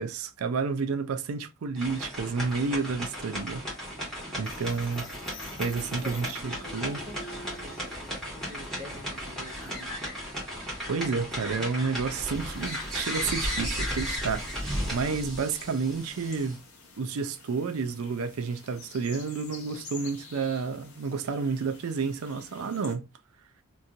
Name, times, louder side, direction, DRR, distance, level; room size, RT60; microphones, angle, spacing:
voice 1, 0.0-3.6 4.4-5.0 5.6-7.0 10.9-16.6 17.0-23.1, right 5 dB, 75° right, 0.4 m, -30 dB
sound 1, 1.7-16.6, equal, ahead, 1.4 m, -35 dB
sound 2, 4.4-9.9, left 1 dB, 40° left, 0.5 m, -48 dB
voice 2, 6.0-10.2, left 1 dB, 30° right, 1.0 m, -46 dB
sound 3, 12.3-23.0, left 4 dB, 80° left, 0.9 m, -50 dB
3.0 x 2.7 x 2.4 m
head